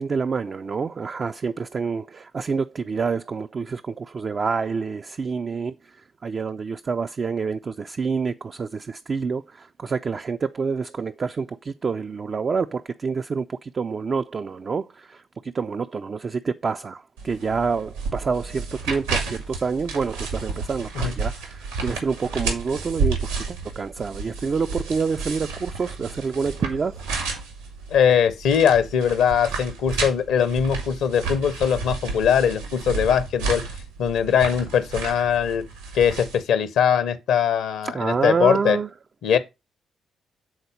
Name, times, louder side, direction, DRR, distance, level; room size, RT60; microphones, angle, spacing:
voice 1, 0.0-27.0 37.8-38.9, right 5 dB, 40° right, 0.4 m, -27 dB
sound 1, 17.2-36.4, right 4 dB, 75° right, 1.6 m, -31 dB
voice 2, 27.9-33.6 34.0-35.6 35.9-38.8 39.2-39.4, left 8 dB, 60° left, 0.6 m, -21 dB
7.8 x 4.1 x 5.1 m
figure-of-eight pair, 40°, 0 cm